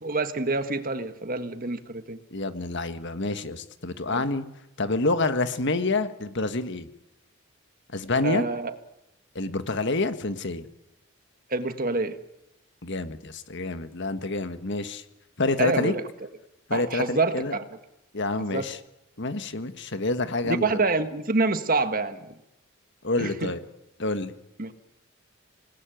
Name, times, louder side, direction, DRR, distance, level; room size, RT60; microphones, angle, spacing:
voice 1, 0.0-2.2 4.1-4.2 8.2-8.7 11.5-12.2 15.6-16.0 16.7-17.6 18.5-18.7 20.4-22.3 23.2-23.5 24.6-24.7, right 3 dB, 40° right, 9 dB, 1.6 m, -27 dB
voice 2, 2.3-4.4 4.8-6.9 7.9-8.4 9.3-10.7 12.8-15.0 15.4-15.9 16.7-17.6 18.1-18.8 19.2-20.8 23.0-23.6 24.0-24.3, left 2 dB, 55° left, 10 dB, 1.6 m, -28 dB
27.5 x 19.5 x 9.3 m, 0.93 s
head